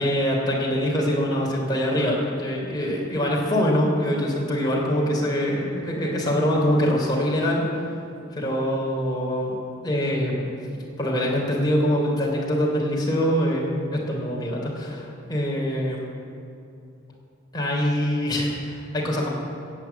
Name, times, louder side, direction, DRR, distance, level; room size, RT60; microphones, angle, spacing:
voice 1, 0.0-7.6 8.3-9.6 9.8-10.5 11.0-16.1 17.5-19.3, equal, 20° left, -3 dB, 3.5 m, -24 dB
16.0 x 8.3 x 8.2 m, 2.6 s
head